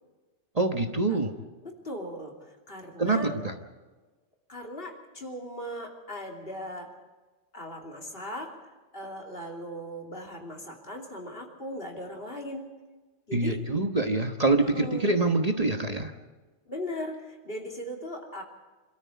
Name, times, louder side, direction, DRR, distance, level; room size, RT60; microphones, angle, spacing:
voice 1, 0.5-1.3 3.0-3.5 13.3-16.1, right 2 dB, 35° right, 5 dB, 1.3 m, -25 dB
voice 2, 1.6-3.3 4.5-6.9 7.5-8.5 8.9-12.7 13.3-13.9 14.6-15.1 16.7-18.4, left 1 dB, 55° left, 1 dB, 3.3 m, -38 dB
26.0 x 13.5 x 8.4 m, 1.3 s
omnidirectional pair, 1.2 m